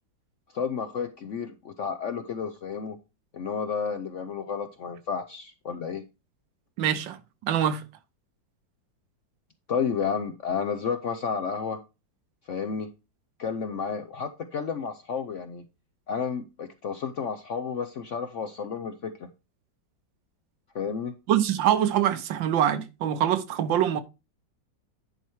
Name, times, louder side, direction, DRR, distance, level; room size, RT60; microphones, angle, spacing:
voice 1, 0.5-3.0 3.3-6.0 9.7-11.8 12.5-12.9 13.4-15.7 16.1-19.3 20.7-21.1, left 6 dB, 65° left, 0.7 m, -31 dB
voice 2, 6.8-7.8 21.3-24.0, right 10 dB, 85° right, 1.6 m, -24 dB
10.5 x 4.4 x 4.6 m
omnidirectional pair, 2.0 m